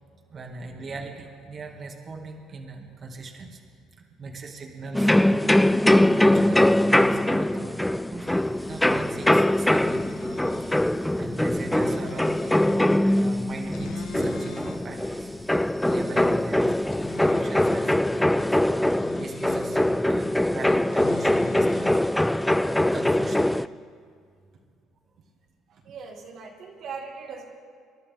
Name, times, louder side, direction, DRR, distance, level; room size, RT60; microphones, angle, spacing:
voice 1, 0.3-3.6 4.0-5.6 6.1-8.3 8.7-10.2 10.7-15.3 15.9-16.8 17.1-22.3 22.9-23.9 25.8-25.9, right 3 dB, 45° right, 1 dB, 2.0 m, -40 dB
sound 1, 4.9-23.7, left 1 dB, 5° left, 0.3 m, -22 dB
sound 2, 8.2-17.3, right 1 dB, 30° right, 2.3 m, -50 dB
sound 3, 9.7-22.5, left 5 dB, 70° left, 1.3 m, -44 dB
voice 2, 25.7-27.4, right 5 dB, 65° right, -1 dB, 2.0 m, -40 dB
27.5 x 12.0 x 3.6 m, 2.2 s
supercardioid pair, 75°, 0 cm